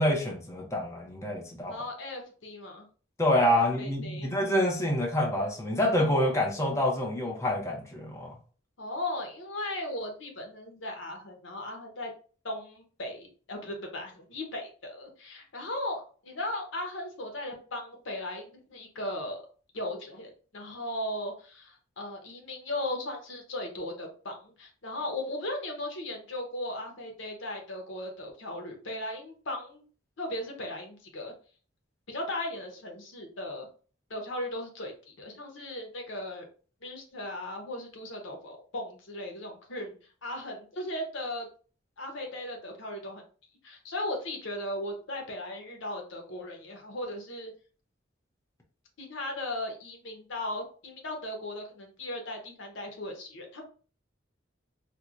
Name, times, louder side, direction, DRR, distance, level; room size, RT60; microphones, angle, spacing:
voice 1, 0.0-1.8 3.2-8.4, left 1 dB, 15° left, 0.6 m, -27 dB
voice 2, 1.7-2.9 3.6-4.3 8.8-12.1 12.4-19.4 19.7-29.8 30.2-31.3 32.1-33.7 34.1-36.5 36.8-41.5 42.0-43.2 43.6-47.5 49.0-53.6, left 1 dB, 85° left, 0.9 m, -37 dB
4.3 x 2.1 x 2.5 m
head